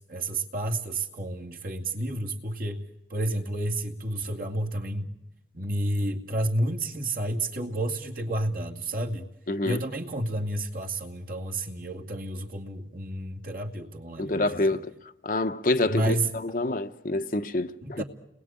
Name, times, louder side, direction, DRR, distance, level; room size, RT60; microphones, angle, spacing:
voice 1, 0.0-2.8 3.1-5.1 5.5-9.3 9.6-14.8 15.8-16.3 17.8-18.0, right 1 dB, 50° right, 2.4 m, -30 dB
voice 2, 9.5-9.8 14.2-14.9 15.2-16.2 16.4-18.0, left 2 dB, 50° left, 0.9 m, -27 dB
30.0 x 21.0 x 8.8 m
head